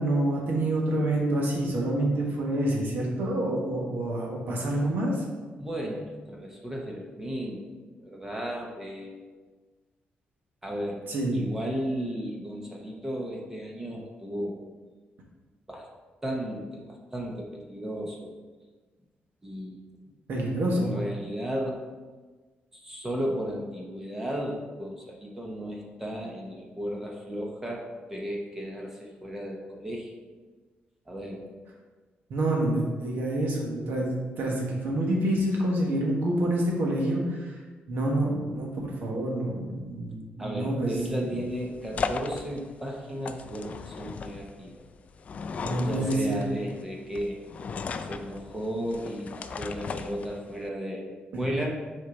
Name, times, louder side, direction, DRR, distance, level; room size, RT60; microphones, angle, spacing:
voice 1, 0.0-5.2 11.1-11.4 20.3-20.9 32.3-34.1 34.4-37.6 37.9-41.3 45.6-46.4 51.3-51.4, right 1 dB, 60° right, -2 dB, 1.5 m, -27 dB
voice 2, 5.6-7.6 8.0-9.2 10.6-11.0 11.3-14.6 15.7-15.9 16.2-18.3 19.4-19.8 20.7-21.8 22.7-30.1 31.1-31.4 40.4-44.8 45.8-47.4 48.0-51.8, equal, 10° right, -1 dB, 0.9 m, -34 dB
sound 1, 40.8-50.7, left 5 dB, 40° left, 0.3 m, -37 dB
6.6 x 4.4 x 4.0 m, 1.4 s
wide cardioid pair, 160°, 4 cm